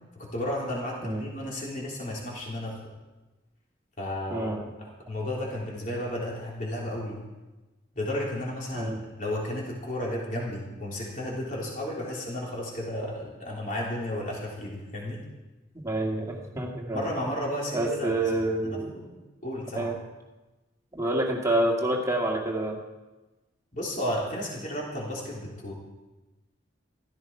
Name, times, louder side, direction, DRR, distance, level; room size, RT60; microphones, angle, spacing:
voice 1, 0.1-2.8 4.0-4.5 4.8-7.2 7.9-15.2 16.9-18.3 18.6-19.1 19.4-19.9 23.7-25.7, left 1 dB, 40° left, -3 dB, 3.4 m, -33 dB
voice 2, 4.3-4.7 8.7-9.0 15.8-17.1 17.7-18.9 19.8-20.0 20.9-22.8, right 1 dB, 15° right, -1 dB, 1.8 m, -28 dB
15.5 x 14.5 x 4.6 m, 1.1 s
head